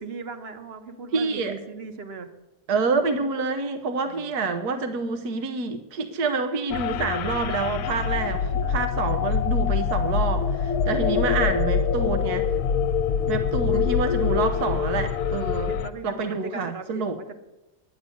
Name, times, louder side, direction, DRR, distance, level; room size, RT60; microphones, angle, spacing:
voice 1, 0.0-2.3 4.1-4.4 7.9-8.8 13.1-13.4 15.2-17.4, right 4 dB, 45° right, 8 dB, 1.3 m, -40 dB
voice 2, 1.1-1.5 2.7-12.5 13.3-15.7 16.0-17.2, right 4 dB, 80° right, 7 dB, 1.5 m, -27 dB
sound 1, 6.7-15.9, left 6 dB, 80° left, 1.2 m, -24 dB
11.0 x 9.6 x 7.8 m, 1.0 s
omnidirectional pair, 1.6 m